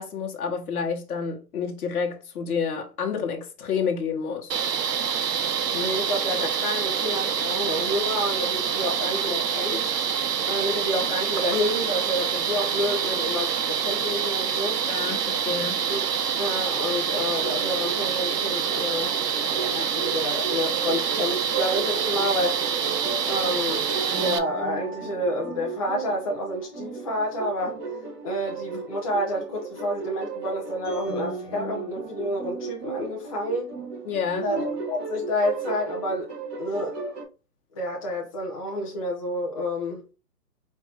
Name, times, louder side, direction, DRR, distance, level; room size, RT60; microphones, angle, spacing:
voice 1, 0.0-4.6 14.9-15.8 34.0-34.5, left 6 dB, 65° left, 1.2 m, -29 dB
sound 1, 4.5-24.4, right 7 dB, 80° right, 0.8 m, -26 dB
voice 2, 5.7-9.9 10.5-14.8 15.9-16.0 16.4-22.6 23.3-23.8 24.1-27.8 28.2-33.7 34.4-36.3 36.6-36.9 37.7-40.0, left 1 dB, 25° left, 0.6 m, -29 dB
sound 2, 17.4-37.2, right 4 dB, 15° right, 1.0 m, -35 dB
4.3 x 2.7 x 3.3 m
hypercardioid pair, 150°, 47 cm